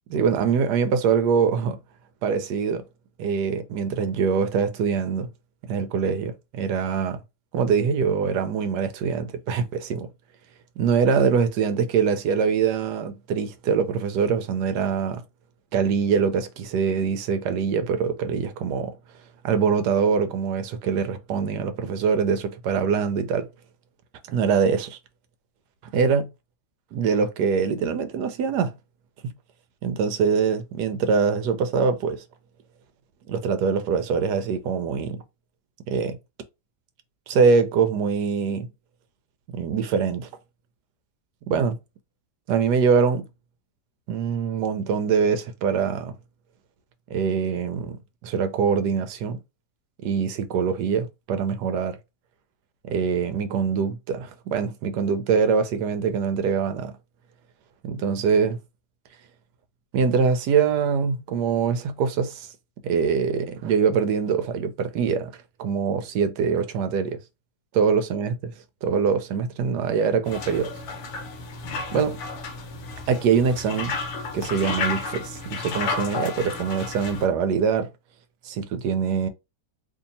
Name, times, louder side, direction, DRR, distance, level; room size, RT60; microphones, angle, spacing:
voice 1, 0.1-1.8 2.2-2.8 3.2-5.3 5.6-7.2 7.5-10.1 10.8-15.2 15.7-18.9 19.4-23.5 24.3-25.0 25.9-26.3 26.9-28.7 29.8-32.2 33.3-35.2 35.9-36.2 37.3-38.7 39.5-40.3 41.5-41.8 42.5-43.2 44.1-46.1 47.1-49.4 50.0-52.0 52.9-56.9 57.8-58.6 59.9-62.5 62.8-65.3 65.6-67.2 67.7-68.5 68.8-70.8 71.9-72.2 73.1-73.9 74.3-77.9 78.4-79.3, right 6 dB, 80° right, 1.2 m, -23 dB
sound 1, 70.3-77.3, left 4 dB, 60° left, 0.8 m, -32 dB
2.8 x 2.8 x 4.0 m
omnidirectional pair, 1.8 m